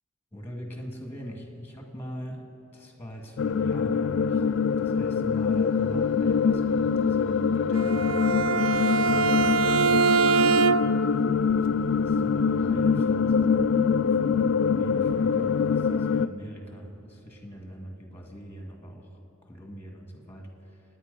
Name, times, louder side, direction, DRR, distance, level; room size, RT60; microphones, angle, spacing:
voice 1, 0.3-2.4 2.7-4.4 4.8-10.2 12.0-20.8, equal, 10° left, 2 dB, 1.9 m, -42 dB
sound 1, 3.4-16.3, left 6 dB, 55° left, 0.3 m, -24 dB
Bowed string instrument, 7.7-11.1, right 5 dB, 75° right, 0.4 m, -23 dB
27.5 x 9.8 x 5.3 m, 2.9 s
head